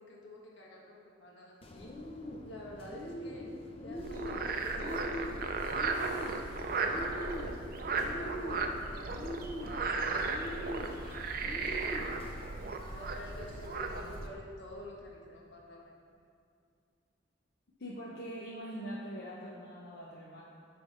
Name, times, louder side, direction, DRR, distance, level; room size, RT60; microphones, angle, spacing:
voice 1, 0.0-2.0 2.4-3.5 3.8-5.2 5.7-7.6 7.9-12.3 12.8-16.0, left 1 dB, 75° left, -3 dB, 1.4 m, -50 dB
Bird, 1.6-14.3, equal, 30° left, 0.6 m, -43 dB
Frog, 4.0-14.3, right 4 dB, 50° right, 0.5 m, -36 dB
voice 2, 17.8-20.4, equal, 60° left, -5 dB, 0.8 m, -43 dB
9.6 x 3.4 x 5.0 m, 2.4 s
head